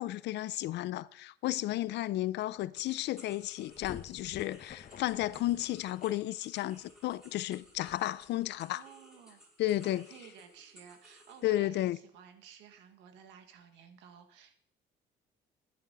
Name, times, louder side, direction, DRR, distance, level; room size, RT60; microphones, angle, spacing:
voice 1, 0.0-8.8 9.6-10.0 11.4-12.0, left 15 dB, 75° left, 0.5 m, -33 dB
sound 1, 2.1-2.2 2.4-8.6, left 8 dB, 50° left, 1.1 m, -52 dB
sound 2, 2.7-11.5, equal, ahead, 5.4 m, -59 dB
voice 2, 8.7-9.5 9.8-14.6, right 8 dB, 90° right, 1.7 m, -54 dB
13.0 x 10.0 x 4.0 m
cardioid pair, 100°, 18 cm